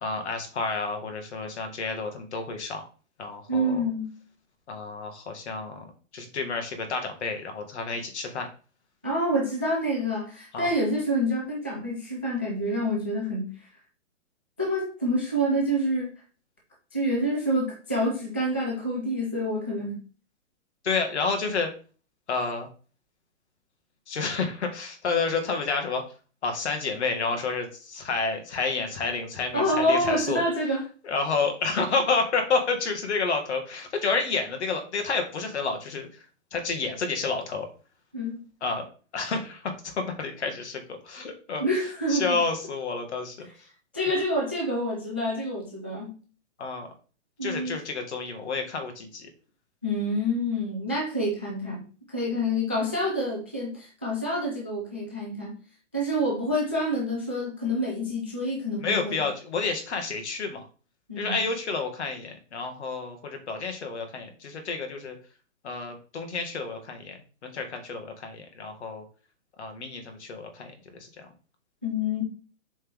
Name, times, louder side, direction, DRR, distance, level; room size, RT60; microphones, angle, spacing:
voice 1, 0.0-2.8 3.2-3.8 4.7-8.5 10.5-10.7 20.8-21.7 22.3-22.7 24.1-26.0 26.4-30.4 31.0-36.3 36.5-37.7 38.6-41.6 42.1-43.5 46.6-46.9 47.4-49.3 58.8-60.7 61.2-65.2 65.6-69.0 69.6-71.3, left 4 dB, 65° left, 4 dB, 2.0 m, -30 dB
voice 2, 3.5-4.2 9.0-13.5 14.6-16.1 16.9-20.0 29.5-30.8 38.1-38.4 41.6-42.4 43.9-46.2 47.4-47.8 49.8-51.8 52.1-55.6 55.9-59.2 61.1-61.4 71.8-72.2, equal, 10° right, -2 dB, 0.4 m, -27 dB
7.6 x 4.2 x 3.7 m, 0.39 s
hypercardioid pair, 170°, 37 cm